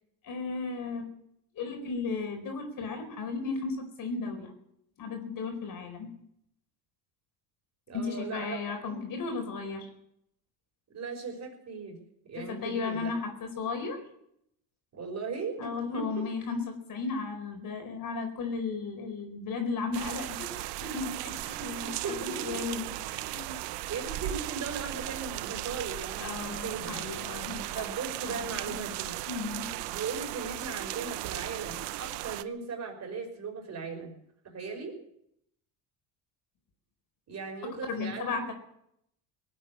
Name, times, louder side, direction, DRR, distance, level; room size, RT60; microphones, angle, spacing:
voice 1, 0.2-1.1 1.5-4.5 5.0-6.1 7.9-9.9 12.4-14.0 15.6-22.0 22.3-23.6 26.2-27.8 28.3-28.4 28.7-28.8 29.3-29.7 37.9-38.5, left 4 dB, 50° left, 5 dB, 4.5 m, -35 dB
voice 2, 7.9-9.0 10.9-12.0 12.2-13.1 14.9-16.3 21.8-22.6 23.9-27.0 27.7-29.1 29.9-34.2 34.4-35.0 37.3-38.5, right 4 dB, 40° right, 3 dB, 5.5 m, -38 dB
sound 1, 19.9-32.4, right 17 dB, 70° right, 0.8 m, -37 dB
18.5 x 8.8 x 8.5 m, 0.75 s
supercardioid pair, 100°, 43 cm